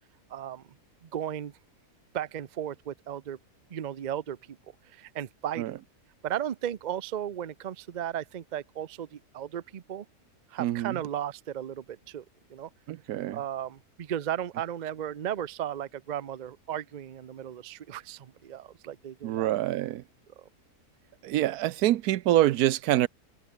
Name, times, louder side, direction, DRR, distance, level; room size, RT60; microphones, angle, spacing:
voice 1, 0.3-0.6 1.0-1.5 2.1-3.4 3.7-4.6 4.8-5.8 6.2-10.1 10.5-12.2 12.5-12.7 13.3-19.5 20.4-20.5, right 10 dB, 60° right, 0.4 m, -35 dB
voice 2, 10.6-11.0 12.9-13.4 19.2-20.0 21.2-23.1, right 14 dB, 80° right, 1.1 m, -26 dB
omnidirectional pair, 1.6 m